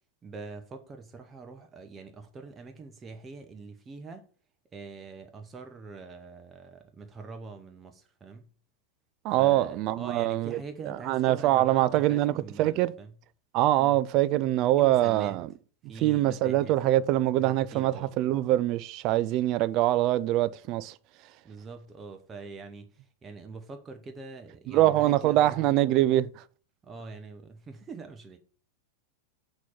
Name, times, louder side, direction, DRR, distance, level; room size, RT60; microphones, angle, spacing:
voice 1, 0.2-4.3 4.7-8.5 9.4-13.1 13.8-14.0 14.8-15.4 15.8-16.8 17.4-18.1 21.4-25.6 26.8-28.4, right 4 dB, 20° right, 0.8 m, -44 dB
voice 2, 9.2-10.6 11.1-12.3 12.6-12.9 13.5-15.5 16.0-21.0 24.7-26.4, right 14 dB, 40° right, 0.3 m, -24 dB
6.0 x 3.0 x 5.5 m
figure-of-eight pair, 90°, 0 cm